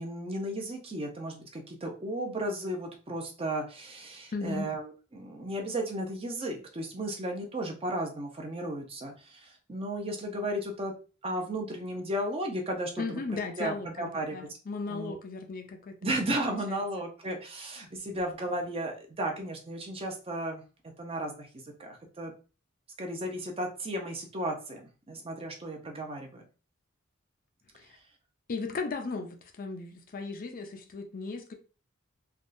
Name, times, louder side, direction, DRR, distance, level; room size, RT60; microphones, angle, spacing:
voice 1, 0.0-10.9 11.2-13.0 13.6-14.5 14.9-15.2 16.0-20.6 21.0-22.3 23.0-26.4, right 1 dB, 30° right, 0.6 m, -34 dB
voice 2, 4.3-4.7 13.0-16.0 16.7-16.8 27.7-28.0 28.5-31.5, left 4 dB, 45° left, 0.4 m, -36 dB
3.5 x 2.3 x 2.5 m
head